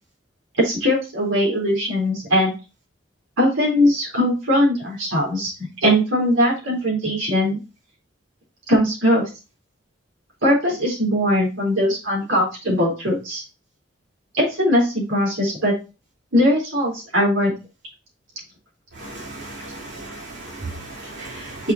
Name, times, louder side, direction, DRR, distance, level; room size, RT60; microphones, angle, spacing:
voice 1, 0.6-2.5 3.4-5.5 5.8-7.6 8.7-9.2 10.4-13.4 14.3-15.7 16.3-17.5, equal, 80° right, -3 dB, 4.0 m, -20 dB
voice 2, 19.0-21.7, right 2 dB, 60° right, -5 dB, 3.8 m, -32 dB
6.8 x 6.7 x 2.9 m, 0.29 s
head